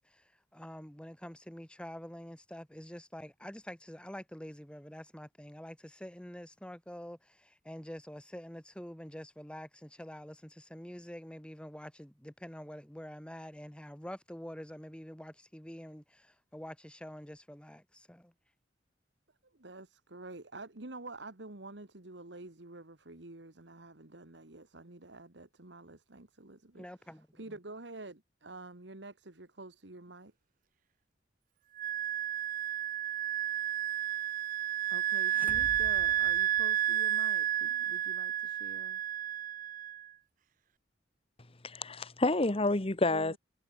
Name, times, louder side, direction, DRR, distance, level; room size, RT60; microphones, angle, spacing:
voice 1, 0.0-18.3 26.7-27.5, equal, 5° left, 2.0 m, -47 dB
voice 2, 19.5-26.9 27.3-30.3 34.9-39.0 43.1-43.4, right 2 dB, 65° right, 1.9 m, -48 dB
Wind instrument woodwind instrument, 31.8-40.1, right 11 dB, 45° right, 0.4 m, -31 dB
sound 1, 35.2-37.2, right 1 dB, 10° right, 0.8 m, -48 dB
voice 3, 41.6-43.4, left 2 dB, 30° left, 1.3 m, -29 dB
head